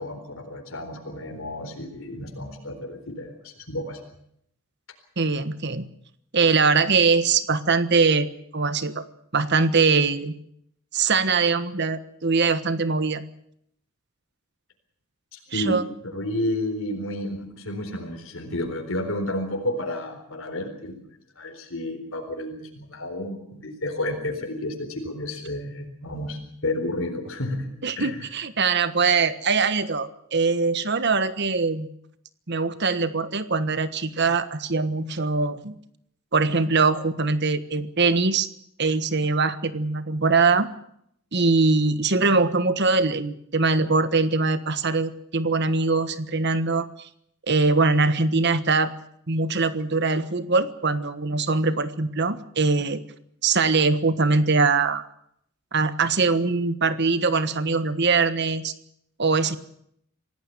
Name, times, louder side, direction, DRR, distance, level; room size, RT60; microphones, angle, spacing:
voice 1, 0.0-4.0 15.3-21.0 21.4-27.7 28.0-28.3, left 1 dB, 70° left, 3 dB, 4.1 m, -31 dB
voice 2, 5.2-5.9 6.3-8.3 8.5-9.0 9.3-10.3 10.9-13.2 15.5-15.8 27.8-31.9 32.5-35.7 36.3-38.5 38.8-40.7 41.3-47.1 47.5-48.9 49.3-53.0 53.4-55.0 55.7-58.7 59.2-59.6, right 4 dB, 55° right, 12 dB, 1.4 m, -22 dB
26.5 x 17.5 x 6.9 m, 0.72 s
head